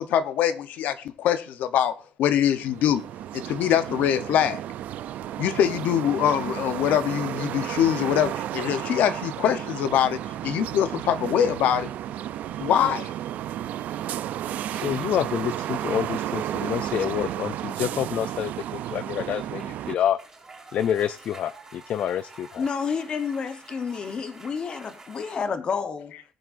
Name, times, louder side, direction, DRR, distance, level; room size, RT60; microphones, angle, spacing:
voice 1, 0.0-1.9 2.2-3.0 3.3-4.6 5.4-11.9 12.6-13.1, left 10 dB, 75° left, 0.8 m, -23 dB
sound 1, 2.5-20.0, right 12 dB, 65° right, 0.4 m, -32 dB
voice 2, 14.7-20.2 20.7-22.6, left 10 dB, 55° left, 0.4 m, -28 dB
sound 2, 15.1-15.8 19.2-25.4, right 3 dB, 20° right, 3.8 m, -48 dB
voice 3, 22.6-26.1, left 6 dB, 35° left, 0.9 m, -30 dB
19.5 x 7.8 x 2.6 m
cardioid pair, 170°, 3 cm